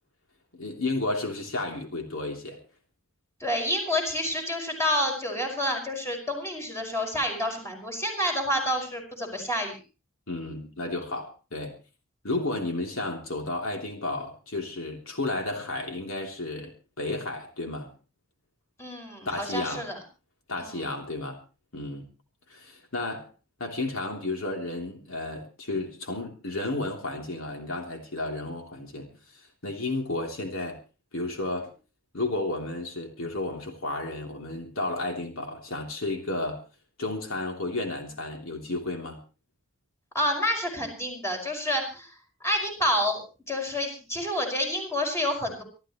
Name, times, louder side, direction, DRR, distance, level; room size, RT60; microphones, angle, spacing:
voice 1, 0.5-2.6 10.3-11.8 12.2-17.9 19.2-19.9 20.5-21.4 21.7-22.1 22.5-23.3 23.6-30.8 31.1-31.7 32.1-36.6 37.0-39.2, left 2 dB, 75° left, 2 dB, 3.3 m, -32 dB
voice 2, 3.4-9.8 18.8-20.0 20.6-20.8 40.1-42.1 42.4-43.2 43.5-45.6, left 1 dB, 15° left, 3 dB, 5.7 m, -28 dB
25.5 x 13.5 x 3.1 m, 0.33 s
head